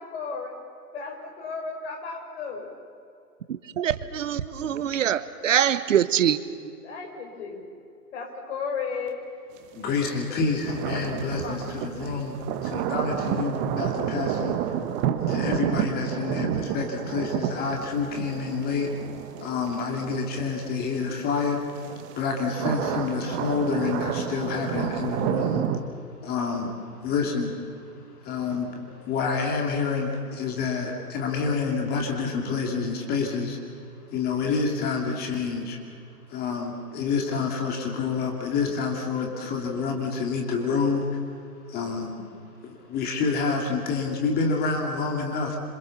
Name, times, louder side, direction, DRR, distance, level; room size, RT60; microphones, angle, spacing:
voice 1, 0.1-0.5 0.9-2.7 6.8-7.7 8.1-9.2 11.3-11.6, left 5 dB, 45° left, 2 dB, 5.7 m, -34 dB
voice 2, 3.5-6.4, right 9 dB, 55° right, 14 dB, 1.3 m, -24 dB
voice 3, 9.7-14.6 15.3-18.9 19.4-21.6 22.2-25.6 26.2-27.6 27.9-33.6 34.1-35.8 36.3-41.2 41.7-42.1 42.6-45.6, left 4 dB, 20° left, 1 dB, 2.8 m, -28 dB
sound 1, 9.7-21.2 21.8-25.8, right 10 dB, 20° right, 1.3 m, -30 dB
26.5 x 26.5 x 7.2 m, 2.6 s
hypercardioid pair, 135°, 47 cm